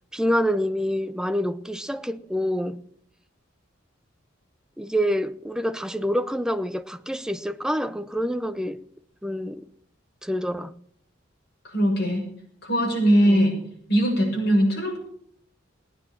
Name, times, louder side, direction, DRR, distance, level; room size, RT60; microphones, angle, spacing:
voice 1, 0.1-2.8 4.8-8.8 9.2-9.6 10.2-10.7 13.2-13.5, equal, 5° right, 0.6 m, -27 dB
voice 2, 11.7-12.3 12.6-13.5 13.9-15.0, equal, 55° left, 7.0 m, -20 dB
18.5 x 9.7 x 7.2 m
head